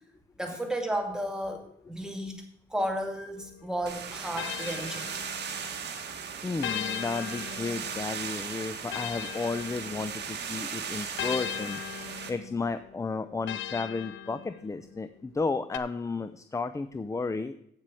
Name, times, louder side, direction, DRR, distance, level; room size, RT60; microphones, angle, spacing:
voice 1, 0.4-2.4 2.7-5.1, right 1 dB, 5° right, 3 dB, 2.2 m, -33 dB
sound 1, 3.4-5.8 6.6-10.4 11.2-14.9 15.7-15.8, left 10 dB, 75° left, 0.6 m, -39 dB
sound 2, 3.9-12.3, right 6 dB, 60° right, 1.7 m, -38 dB
voice 2, 6.4-11.8 12.3-17.5, left 4 dB, 15° left, 12 dB, 0.5 m, -33 dB
8.4 x 7.5 x 6.3 m, 0.73 s
cardioid pair, 90°, 20 cm